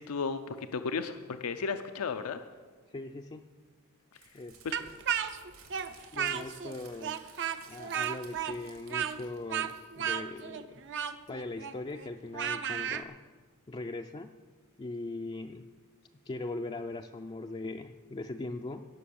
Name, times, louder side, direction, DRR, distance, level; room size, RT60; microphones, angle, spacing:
voice 1, 0.0-2.4 4.6-4.7, left 5 dB, 85° left, 9 dB, 0.6 m, -34 dB
voice 2, 2.9-3.4 4.3-5.0 6.1-7.2 7.7-10.8 11.3-13.2 13.7-14.3 14.8-15.7 16.3-18.9, left 2 dB, 25° left, 4 dB, 0.4 m, -40 dB
Crumpling crinkling, 4.1-10.1, right 5 dB, 75° right, 2.7 m, -57 dB
Speech, 4.7-6.7 7.0-13.0, right 8 dB, 55° right, 0.6 m, -34 dB
17.0 x 6.8 x 7.0 m, 1.5 s
head